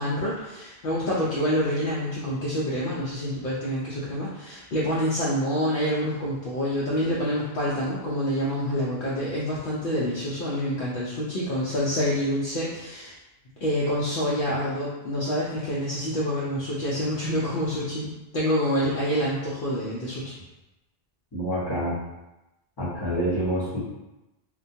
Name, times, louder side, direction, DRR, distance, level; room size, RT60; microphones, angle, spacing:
voice 1, 0.0-13.1 13.6-20.4, equal, 60° left, -8 dB, 0.7 m, -27 dB
voice 2, 21.3-22.0 22.8-23.8, equal, 25° left, -8 dB, 0.8 m, -27 dB
2.2 x 2.2 x 2.6 m, 0.99 s
omnidirectional pair, 1.1 m